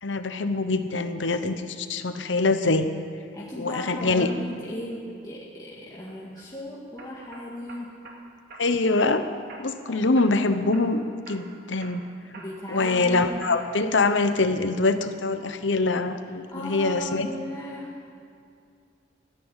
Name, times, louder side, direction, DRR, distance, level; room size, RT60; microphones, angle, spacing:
voice 1, 0.0-2.9 3.6-4.3 8.6-9.2 9.6-12.0 12.7-17.3, left 3 dB, 75° left, 9 dB, 1.0 m, -24 dB
voice 2, 3.3-8.0 9.9-10.1 12.4-13.5 16.5-17.9, equal, 20° left, -7 dB, 1.9 m, -36 dB
sound 1, 6.1-6.4 7.0-8.2 8.5-9.1 9.5-9.9 10.2-10.9 11.3-11.5 11.8-13.8 14.2-14.7, right 3 dB, 55° right, 2.4 m, -45 dB
14.0 x 10.5 x 9.0 m, 2.4 s
head